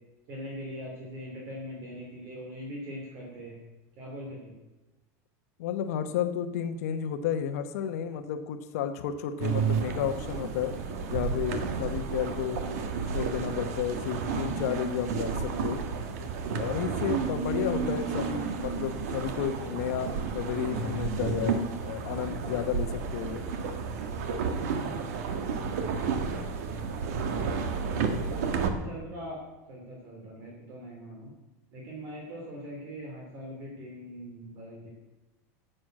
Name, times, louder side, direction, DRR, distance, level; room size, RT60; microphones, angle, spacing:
voice 1, 0.3-3.6 4.0-4.5 17.8-17.9 25.5-26.9 28.6-29.4 29.7-31.3 31.7-34.9, equal, 35° right, -1 dB, 2.6 m, -42 dB
voice 2, 5.6-10.7 11.1-12.8 13.1-15.8 16.6-23.4, left 9 dB, 70° left, 8 dB, 1.0 m, -32 dB
sound 1, 9.4-28.7, right 5 dB, 75° right, 1.6 m, -31 dB
12.0 x 7.8 x 7.6 m, 1.1 s
supercardioid pair, 175°, 8 cm